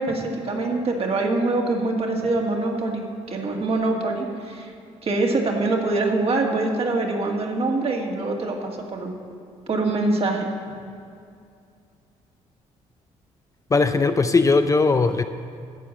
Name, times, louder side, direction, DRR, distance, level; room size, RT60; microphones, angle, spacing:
voice 1, 0.0-4.7 5.0-9.1 9.7-10.5, right 2 dB, 45° right, 1 dB, 1.9 m, -24 dB
voice 2, 13.7-15.2, left 4 dB, 25° left, 9 dB, 0.5 m, -19 dB
13.0 x 4.7 x 8.8 m, 2.4 s
supercardioid pair, 75°, 13 cm